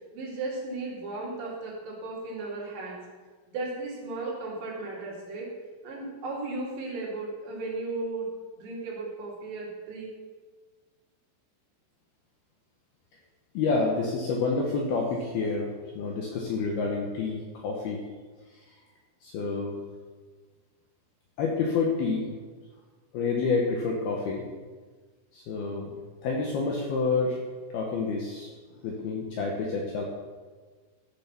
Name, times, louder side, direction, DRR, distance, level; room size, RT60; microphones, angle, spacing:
voice 1, 0.1-3.1 3.5-5.5 5.8-8.3 8.6-10.1, right 3 dB, 65° right, -4 dB, 4.6 m, -35 dB
voice 2, 13.5-15.7 15.9-18.0 19.2-19.8 21.4-22.3 23.1-24.4 25.3-25.9 26.2-28.5 28.8-30.0, left 4 dB, 70° left, -1 dB, 2.5 m, -28 dB
13.5 x 7.0 x 5.9 m, 1.4 s
omnidirectional pair, 5.8 m